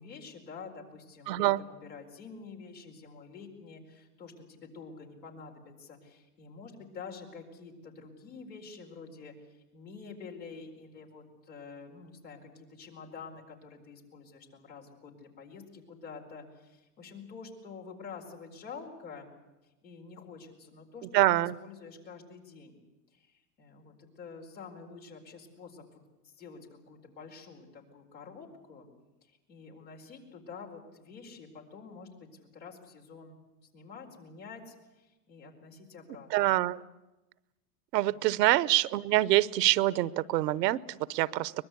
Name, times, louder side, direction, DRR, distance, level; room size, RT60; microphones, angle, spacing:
voice 1, 0.0-19.3 19.6-22.8 23.1-28.9 29.2-33.4 33.7-36.3 38.1-38.3, left 5 dB, 90° left, 1 dB, 4.8 m, -48 dB
voice 2, 1.3-1.6 21.1-21.6 36.3-36.8 37.9-41.5, right 16 dB, 80° right, 20 dB, 0.9 m, -25 dB
23.5 x 20.5 x 8.3 m, 1.0 s
hypercardioid pair, 105°, 49 cm